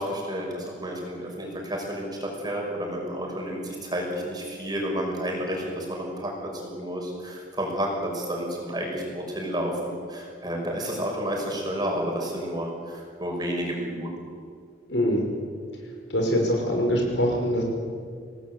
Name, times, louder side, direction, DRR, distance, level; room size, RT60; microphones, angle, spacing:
voice 1, 0.0-14.1, equal, 20° right, 0 dB, 5.9 m, -31 dB
voice 2, 14.9-15.3 16.1-17.6, equal, 70° left, 1 dB, 5.7 m, -23 dB
27.5 x 18.5 x 8.1 m, 2.2 s
head